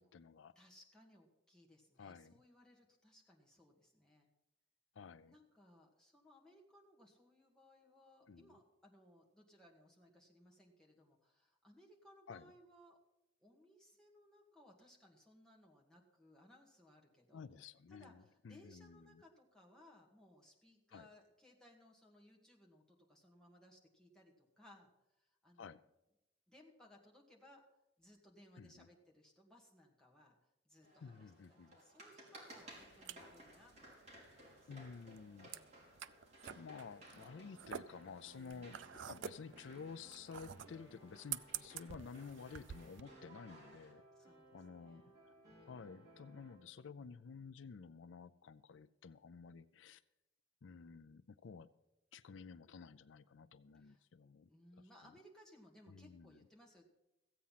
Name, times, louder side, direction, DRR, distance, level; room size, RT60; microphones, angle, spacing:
voice 1, 0.0-0.5 2.0-2.3 5.0-5.4 8.3-8.6 12.3-12.5 17.3-19.2 20.9-21.1 25.6-25.8 28.6-28.9 31.0-31.8 34.7-35.5 36.5-38.8 39.1-44.0 44.5-45.3 45.7-50.0 50.6-51.7 52.1-54.5 55.0-55.1 55.9-56.4, left 5 dB, 90° left, 15 dB, 0.4 m, -52 dB
voice 2, 0.6-4.3 5.2-13.0 13.4-17.4 17.9-24.9 25.2-25.7 26.5-27.6 28.0-30.4 30.7-34.7 35.4-36.0 44.2-45.1 53.7-54.0 54.5-56.8, left 1 dB, 5° left, -2 dB, 2.0 m, -64 dB
sound 1, 30.8-43.9, right 1 dB, 35° right, 3.9 m, -60 dB
sound 2, 32.6-43.0, right 9 dB, 85° right, 0.5 m, -49 dB
sound 3, 37.1-46.6, right 1 dB, 20° right, 5.5 m, -63 dB
15.0 x 8.5 x 5.7 m, 0.94 s
head